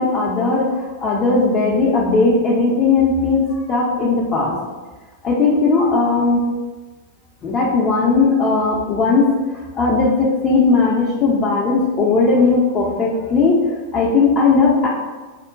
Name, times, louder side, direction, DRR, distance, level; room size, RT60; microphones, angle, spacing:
voice 1, 0.0-4.5 5.2-6.4 7.4-9.3 9.7-13.6 13.9-14.9, left 4 dB, 30° left, -5 dB, 0.5 m, -17 dB
3.6 x 2.1 x 2.4 m, 1.3 s
figure-of-eight pair, 90°, 0 cm